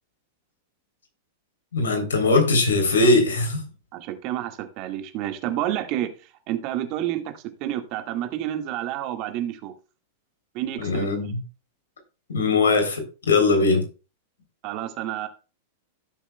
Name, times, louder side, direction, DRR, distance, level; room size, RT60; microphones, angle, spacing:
voice 1, 1.7-3.6 10.8-11.4 12.3-13.9, left 3 dB, 75° left, 3.4 m, -20 dB
voice 2, 3.9-6.1 6.5-9.7 10.5-11.1 14.6-15.3, right 12 dB, 45° right, 1.8 m, -29 dB
16.5 x 7.1 x 2.3 m
figure-of-eight pair, 100°, 0 cm